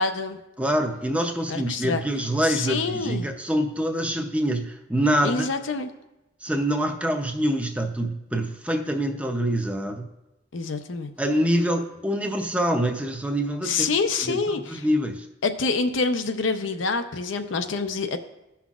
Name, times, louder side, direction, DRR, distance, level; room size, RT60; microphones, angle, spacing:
voice 1, 0.0-0.4 1.5-2.0 2.4-3.3 5.2-5.9 10.5-11.1 13.6-14.9 15.4-18.2, left 4 dB, 85° left, 8 dB, 0.6 m, -26 dB
voice 2, 0.6-5.5 6.4-10.0 11.2-13.9 14.3-14.4 14.7-15.3, equal, 5° right, 4 dB, 0.6 m, -25 dB
16.0 x 5.7 x 2.4 m, 0.95 s
head